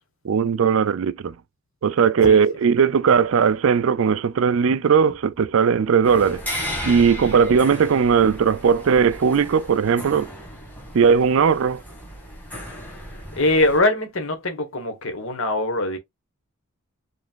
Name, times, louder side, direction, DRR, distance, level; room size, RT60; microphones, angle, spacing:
voice 1, 0.2-1.3 1.8-6.4 6.8-10.3 10.9-11.8, right 6 dB, 65° right, 0.4 m, -18 dB
sound 1, 6.0-13.8, equal, 10° left, 1.9 m, -35 dB
voice 2, 13.3-16.0, left 2 dB, 60° left, 1.4 m, -22 dB
5.0 x 3.3 x 2.4 m
head